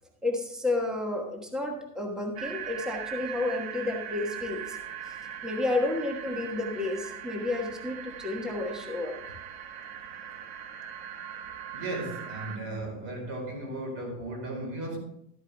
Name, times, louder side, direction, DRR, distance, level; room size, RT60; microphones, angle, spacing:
voice 1, 0.2-4.8 5.1-5.2 5.4-9.1, left 2 dB, ahead, 1 dB, 1.3 m, -31 dB
sound 1, 2.4-12.6, right 9 dB, 65° right, 1.7 m, -40 dB
voice 2, 11.7-15.0, right 2 dB, 40° right, 1 dB, 4.5 m, -35 dB
13.0 x 9.3 x 3.4 m, 0.75 s
supercardioid pair, 165°, 34 cm